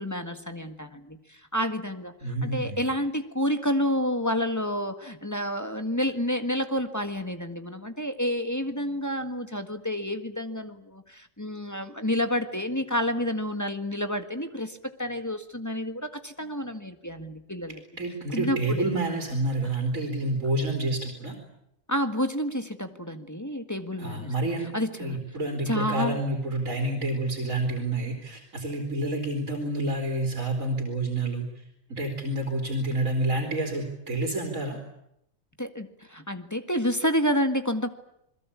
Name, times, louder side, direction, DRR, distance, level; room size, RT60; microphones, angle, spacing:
voice 1, 0.0-17.8 18.3-18.8 21.9-24.3 24.7-25.2 25.6-26.2 35.6-37.9, equal, 15° left, 6 dB, 1.7 m, -29 dB
voice 2, 2.2-2.9 18.0-21.4 24.0-24.7 25.0-31.6 31.9-34.8, right 2 dB, 80° right, 2 dB, 4.0 m, -28 dB
28.0 x 21.5 x 8.6 m, 0.79 s
omnidirectional pair, 1.4 m